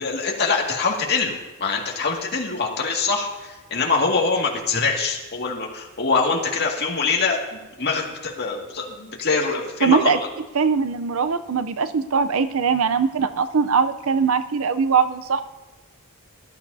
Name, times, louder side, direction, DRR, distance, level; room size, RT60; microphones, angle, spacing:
voice 1, 0.0-10.2, left 4 dB, 50° left, 0 dB, 2.1 m, -24 dB
voice 2, 9.8-10.2 10.6-15.4, right 5 dB, 70° right, 11 dB, 0.6 m, -21 dB
19.0 x 12.5 x 2.7 m, 1.1 s
head